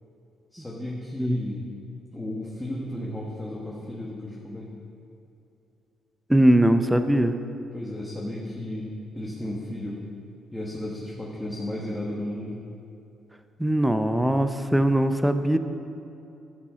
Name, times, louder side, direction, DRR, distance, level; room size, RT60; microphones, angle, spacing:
voice 1, 0.5-1.6 2.1-4.7 7.7-10.1 10.5-12.6, left 1 dB, 10° left, -5 dB, 1.4 m, -34 dB
voice 2, 6.3-7.4 13.6-15.6, right 1 dB, 5° right, 9 dB, 0.6 m, -21 dB
12.5 x 5.9 x 4.9 m, 2.8 s
cardioid pair, 90°, 0 cm